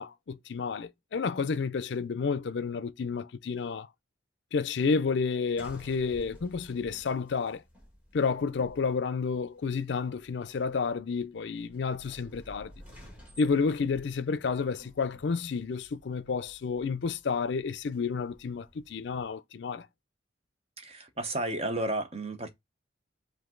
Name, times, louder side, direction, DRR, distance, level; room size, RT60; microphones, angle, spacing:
voice 1, 0.0-3.9 4.5-7.6 8.1-12.7 13.4-19.9, left 5 dB, 65° left, 0.4 m, -30 dB
sound 1, 5.6-19.3, equal, 10° right, 1.5 m, -55 dB
voice 2, 20.8-22.5, right 1 dB, 35° right, 0.8 m, -32 dB
5.1 x 2.6 x 3.7 m
head